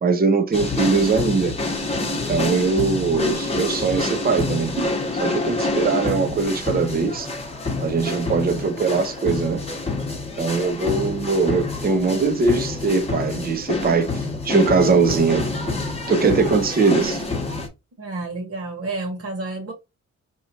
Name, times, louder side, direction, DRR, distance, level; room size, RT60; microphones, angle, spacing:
voice 1, 0.0-1.5 2.1-4.9 5.2-7.3 7.8-9.6 10.4-14.1 14.4-15.4 16.1-17.2, right 4 dB, 30° right, 0.6 m, -21 dB
sound 1, 0.5-17.7, left 3 dB, 20° left, 1.0 m, -27 dB
voice 2, 18.0-19.7, right 2 dB, 50° right, 1.5 m, -30 dB
4.7 x 2.9 x 2.8 m
wide cardioid pair, 145°, 30 cm